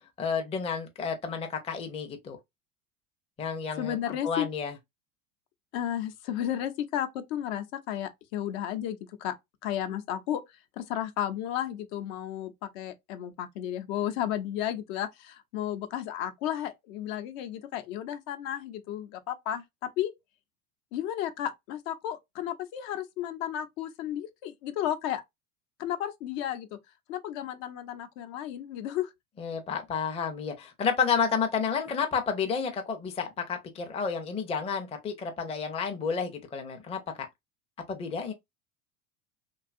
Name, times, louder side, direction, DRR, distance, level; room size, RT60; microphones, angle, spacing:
voice 1, 0.2-2.4 3.4-4.0 4.2-4.7 29.4-37.0 37.9-38.3, left 6 dB, 15° left, 0.5 m, -30 dB
voice 2, 3.8-4.5 5.7-9.3 9.6-10.4 10.8-19.6 20.0-20.1 20.9-25.2 25.8-26.8 27.1-29.1, left 11 dB, 65° left, 0.7 m, -33 dB
2.6 x 2.3 x 2.4 m
hypercardioid pair, 90°, 44 cm